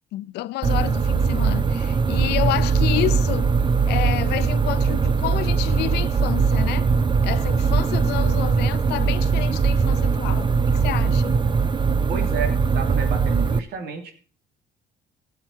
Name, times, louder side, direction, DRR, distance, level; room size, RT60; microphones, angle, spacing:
voice 1, 0.1-3.5 3.9-6.9 7.2-11.4, left 16 dB, 80° left, 0.7 m, -29 dB
sound 1, 0.6-13.6, right 5 dB, 25° right, 0.7 m, -21 dB
voice 2, 12.1-14.1, right 6 dB, 70° right, 3.0 m, -31 dB
16.0 x 8.0 x 4.6 m
cardioid pair, 110°, 17 cm